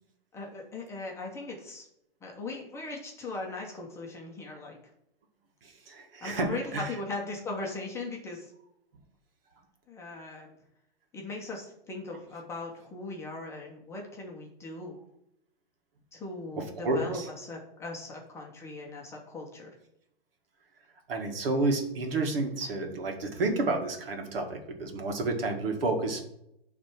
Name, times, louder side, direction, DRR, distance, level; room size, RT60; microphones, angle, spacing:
voice 1, 0.3-1.9 2.2-4.8 6.2-8.5 9.9-10.5 11.1-14.9 16.1-19.8, left 2 dB, 10° left, -1 dB, 0.9 m, -39 dB
voice 2, 5.6-7.0 16.6-17.3 21.1-26.2, right 2 dB, 70° right, 4 dB, 1.8 m, -30 dB
8.7 x 3.4 x 6.1 m, 0.79 s
hypercardioid pair, 160°, 30 cm